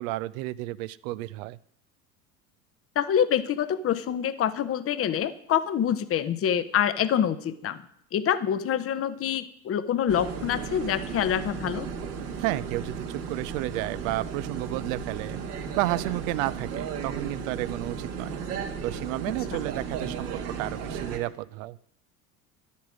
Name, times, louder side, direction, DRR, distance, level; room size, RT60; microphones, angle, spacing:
voice 1, 0.0-1.6 12.4-15.4 15.8-18.3 18.8-21.8, right 18 dB, 60° right, 18 dB, 0.7 m, -31 dB
voice 2, 2.9-7.8 8.1-11.9 19.5-19.6, left 9 dB, 30° left, 14 dB, 0.9 m, -26 dB
sound 1, 10.1-21.2, right 6 dB, 75° right, 2.1 m, -35 dB
11.5 x 8.4 x 6.2 m, 0.70 s
hypercardioid pair, 70°, 46 cm